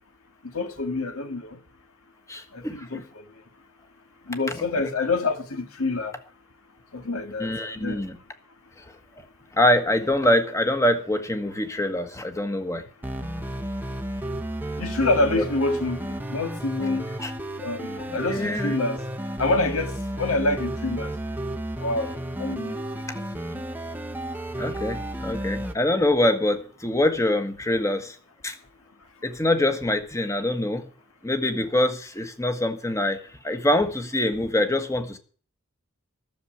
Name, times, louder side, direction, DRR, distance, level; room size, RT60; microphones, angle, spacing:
voice 1, 0.4-1.6 2.5-3.2 4.3-6.1 6.9-8.1 13.4-13.5 14.8-17.1 17.6-19.0 19.4-21.1 21.8-23.3 23.5-23.6, left 2 dB, 75° left, 1.9 m, -27 dB
voice 2, 2.3-3.0 4.7-4.9 7.4-8.2 9.5-12.8 17.2-17.3 18.1-18.7 24.6-28.2 28.4-28.5 29.2-30.8 31.2-33.2 33.4-35.2, left 1 dB, 15° left, 1.4 m, -24 dB
sound 1, 13.0-25.7, right 1 dB, 10° right, 0.9 m, -32 dB
12.5 x 7.1 x 8.5 m
head